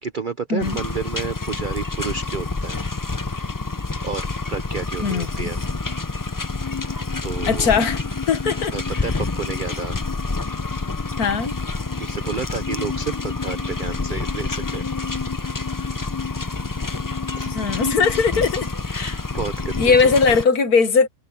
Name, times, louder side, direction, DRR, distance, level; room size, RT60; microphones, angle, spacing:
voice 1, 0.0-2.8 4.0-5.6 7.2-7.8 8.7-10.0 12.0-14.8 17.4-17.5 18.9-20.4, right 5 dB, 50° right, 0.6 m, -31 dB
sound 1, 0.6-20.4, left 3 dB, 25° left, 0.4 m, -28 dB
voice 2, 5.0-5.5 7.5-8.0 8.3-8.7 11.2-11.6 17.5-19.2 19.8-21.1, left 5 dB, 75° left, 2.0 m, -19 dB
omnidirectional pair, 1.6 m